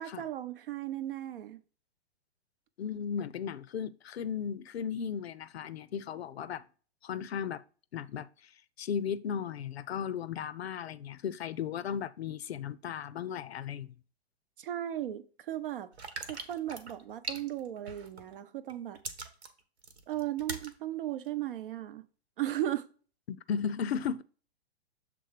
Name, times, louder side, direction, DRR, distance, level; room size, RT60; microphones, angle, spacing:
voice 1, 0.0-1.6 14.6-15.9 16.3-19.0 20.1-22.0 22.4-22.9, right 12 dB, 55° right, 0.7 m, -36 dB
voice 2, 2.8-6.6 7.0-7.6 7.9-8.3 8.8-13.9 23.3-24.2, left 7 dB, 75° left, 0.6 m, -35 dB
sound 1, 15.9-18.3 18.7-20.7 21.3-21.4, right 4 dB, 80° right, 1.2 m, -41 dB
6.9 x 3.7 x 4.7 m
hypercardioid pair, 115°, 32 cm